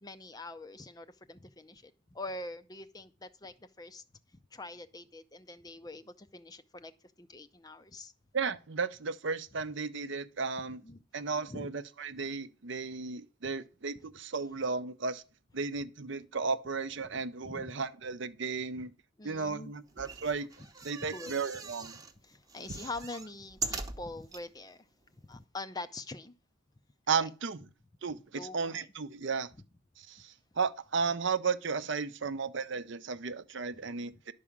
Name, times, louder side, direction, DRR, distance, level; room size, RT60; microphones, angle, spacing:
voice 1, 0.0-4.0 4.5-6.9 7.2-8.1 10.8-11.0 11.5-11.7 17.4-17.7 19.2-19.7 21.0-21.3 22.2-24.9 25.3-26.3 27.1-27.2 28.3-28.9 34.1-34.2, left 2 dB, 15° left, 0.5 m, -44 dB
voice 2, 8.3-10.8 11.1-15.2 15.5-18.9 19.2-20.5 20.8-21.9 27.1-27.6 28.0-29.5 30.0-34.3, right 5 dB, 55° right, 0.6 m, -34 dB
sound 1, 19.9-22.1 22.5-24.4 25.0-25.1 25.3-25.4, right 4 dB, 15° right, 0.9 m, -41 dB
11.0 x 4.9 x 7.1 m
head